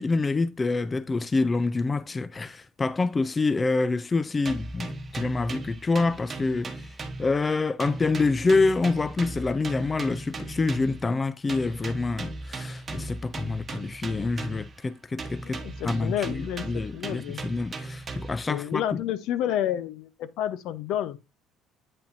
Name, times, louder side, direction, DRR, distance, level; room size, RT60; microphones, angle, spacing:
voice 1, 0.0-6.9 7.2-19.0, left 3 dB, 20° left, 0.3 m, -27 dB
sound 1, 4.4-7.5 7.8-11.1 11.5-14.8 15.2-18.5, right 2 dB, 25° right, 1.0 m, -37 dB
voice 2, 15.4-17.4 18.5-21.2, left 11 dB, 65° left, 0.7 m, -30 dB
8.7 x 5.6 x 2.6 m
cardioid pair, 135°, 0 cm